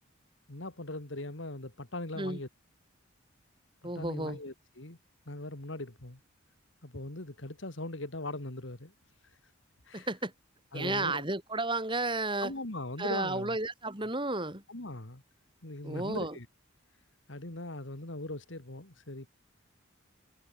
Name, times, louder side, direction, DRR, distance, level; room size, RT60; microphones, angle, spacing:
voice 1, 0.5-2.5 3.8-5.0 5.3-6.2 6.8-8.9 9.9-10.1 10.7-11.2 12.4-13.6 14.7-15.2 15.6-16.5 17.3-19.3, left 2 dB, 65° left, 2.5 m, -40 dB
voice 2, 3.8-4.4 9.9-10.3 10.7-12.5 13.0-14.6 15.8-16.4, right 2 dB, 25° right, 6.8 m, -32 dB
head